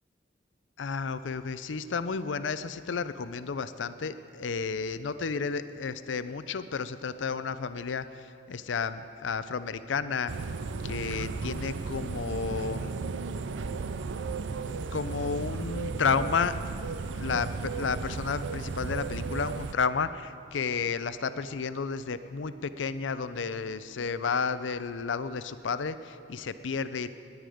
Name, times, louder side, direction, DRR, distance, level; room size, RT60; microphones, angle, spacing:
voice 1, 0.8-10.3 10.8-12.9 14.9-16.5 17.1-27.1, left 5 dB, 90° left, 13 dB, 0.5 m, -32 dB
sound 1, 10.3-19.7, right 4 dB, 80° right, 0.5 m, -34 dB
19.5 x 9.6 x 5.0 m, 2.5 s
head